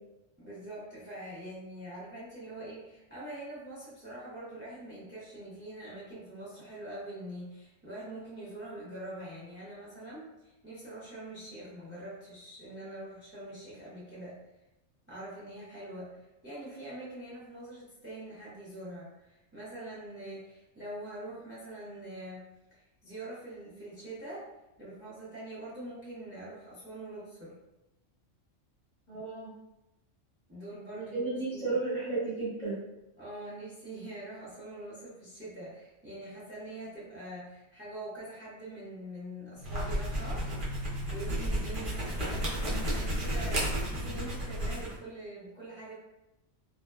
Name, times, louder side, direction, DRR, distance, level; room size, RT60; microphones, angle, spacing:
voice 1, 0.4-14.4 15.1-24.5 24.8-27.6 30.5-31.8 33.2-40.5 41.1-45.9, right 1 dB, 15° right, -8 dB, 0.5 m, -44 dB
voice 2, 29.1-29.5 30.9-32.8, right 3 dB, 30° left, -9 dB, 0.7 m, -33 dB
sound 1, 39.6-45.0, equal, 50° right, 0.8 m, -32 dB
2.8 x 2.1 x 2.2 m, 0.94 s
omnidirectional pair, 1.3 m